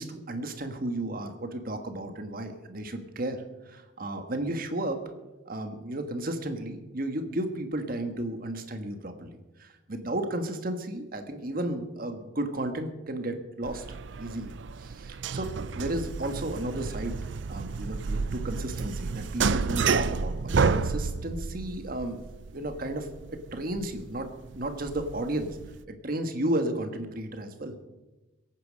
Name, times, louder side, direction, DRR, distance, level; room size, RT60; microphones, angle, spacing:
voice 1, 0.0-5.0 5.4-9.3 9.6-22.2 22.5-25.6 25.9-27.8, right 1 dB, 50° right, 7 dB, 1.5 m, -33 dB
sound 1, 13.6-25.8, right 4 dB, 70° right, 0.5 m, -31 dB
22.5 x 9.1 x 5.2 m, 1.1 s
head